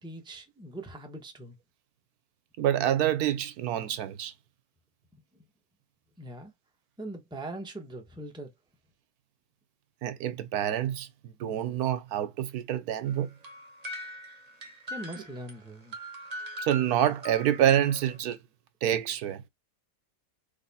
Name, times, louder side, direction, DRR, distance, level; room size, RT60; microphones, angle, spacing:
voice 1, 0.0-1.6 5.3-5.4 6.2-6.5 7.0-8.5 14.9-16.0, right 1 dB, 5° right, 0.8 m, -41 dB
voice 2, 2.6-4.3 10.0-11.1 11.4-13.3 16.6-18.4 18.8-19.4, right 11 dB, 80° right, 1.2 m, -27 dB
sound 1, 13.1-18.2, equal, 30° right, 1.0 m, -42 dB
4.0 x 3.2 x 4.1 m
omnidirectional pair, 1.6 m